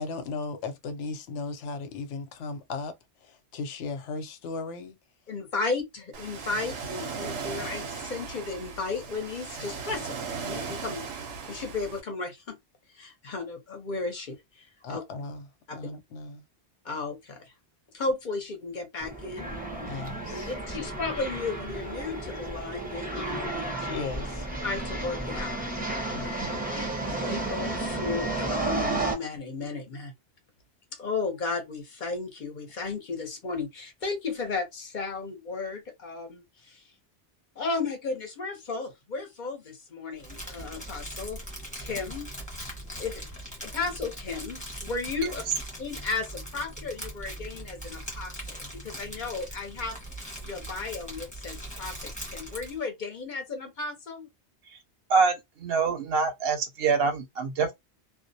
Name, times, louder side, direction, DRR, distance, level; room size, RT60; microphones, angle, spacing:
voice 1, 0.0-2.9 3.2-5.0 14.8-15.5 15.7-16.4 19.8-20.5 23.8-24.5 26.1-26.6, left 4 dB, 90° left, 0.9 m, -36 dB
voice 2, 5.3-11.1 11.5-12.6 12.9-15.0 15.7-15.9 16.8-17.5 17.9-19.5 20.3-23.7 24.6-25.6 26.2-26.3 26.7-30.1 30.9-36.8 37.6-41.4 41.8-42.3 43.0-43.3 43.6-45.4 45.8-50.0 50.4-54.3, left 4 dB, 50° left, 0.7 m, -34 dB
Ocean, 6.1-12.0, right 5 dB, 85° right, 0.9 m, -37 dB
sound 1, 19.0-29.1, right 2 dB, 10° right, 0.4 m, -32 dB
Crumpling crinkling, 40.2-52.8, equal, 5° left, 0.9 m, -40 dB
voice 3, 55.1-57.7, right 5 dB, 65° right, 0.7 m, -25 dB
2.3 x 2.0 x 2.6 m
omnidirectional pair, 1.2 m